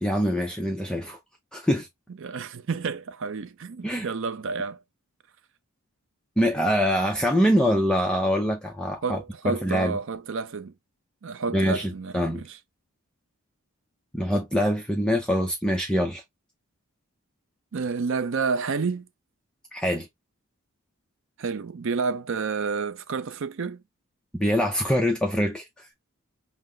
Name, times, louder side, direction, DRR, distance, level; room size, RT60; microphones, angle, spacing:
voice 1, 0.0-1.2 1.5-1.9 3.8-4.1 6.4-9.2 9.4-10.0 11.5-12.4 14.1-16.2 19.7-20.1 24.4-25.9, equal, 5° left, 0.5 m, -24 dB
voice 2, 2.2-4.8 9.0-10.7 11.2-12.6 17.7-19.1 21.4-23.8, right 5 dB, 60° right, 0.5 m, -30 dB
5.6 x 2.1 x 3.2 m
head